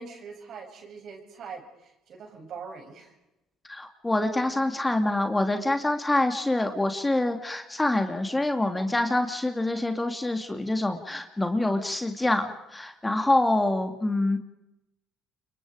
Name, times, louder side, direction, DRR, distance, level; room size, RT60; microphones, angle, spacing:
voice 1, 0.0-3.1, right 5 dB, 55° right, 3 dB, 7.6 m, -42 dB
voice 2, 3.7-14.4, left 2 dB, 15° left, 5 dB, 2.9 m, -26 dB
29.5 x 24.0 x 5.2 m, 0.90 s
hypercardioid pair, 65°, 0 cm